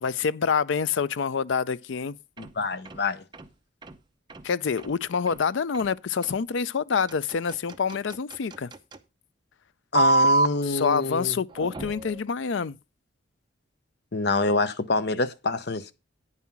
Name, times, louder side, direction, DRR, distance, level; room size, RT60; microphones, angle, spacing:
voice 1, 0.0-2.2 4.4-8.7 10.6-12.8, left 6 dB, 70° left, 0.5 m, -27 dB
voice 2, 2.4-3.2 9.9-11.3 14.1-15.9, left 3 dB, 55° left, 0.8 m, -26 dB
sound 1, 2.4-2.5 2.9-3.0 3.3-3.5 3.8-3.9 4.3-4.4 4.8-4.9 5.3-5.4 5.7-5.9 6.2-6.4 7.1-9.0 9.9-10.5 11.5-12.2, right 3 dB, 25° right, 0.7 m, -26 dB
9.6 x 5.6 x 5.9 m
head